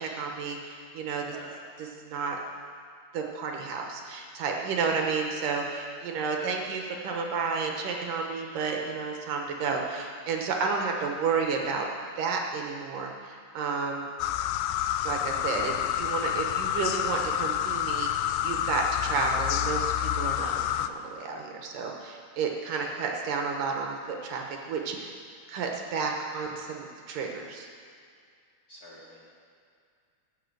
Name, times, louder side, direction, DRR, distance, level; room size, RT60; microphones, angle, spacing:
voice 1, 0.0-1.3 2.0-2.4 3.1-11.9 12.2-14.1 15.0-25.1 25.5-27.7, right 5 dB, 65° right, 1 dB, 2.4 m, -31 dB
sound 1, 14.2-20.9, left 11 dB, 85° left, 2.5 m, -28 dB
voice 2, 22.7-23.0 28.7-29.3, left 1 dB, 25° left, -6 dB, 2.4 m, -47 dB
17.5 x 7.1 x 7.8 m, 2.3 s
omnidirectional pair, 4.8 m